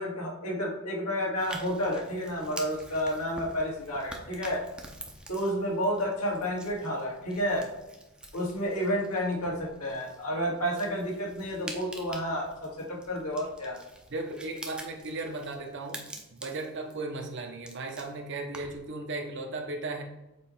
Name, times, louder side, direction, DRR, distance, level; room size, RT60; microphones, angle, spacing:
voice 1, 0.0-4.6 5.3-7.7 8.3-13.8, equal, 85° left, -3 dB, 1.9 m, -30 dB
sound 1, 1.4-18.9, right 1 dB, 5° right, 0.6 m, -47 dB
voice 2, 14.1-20.0, right 2 dB, 55° right, 3 dB, 0.8 m, -36 dB
7.2 x 3.1 x 4.4 m, 0.98 s
head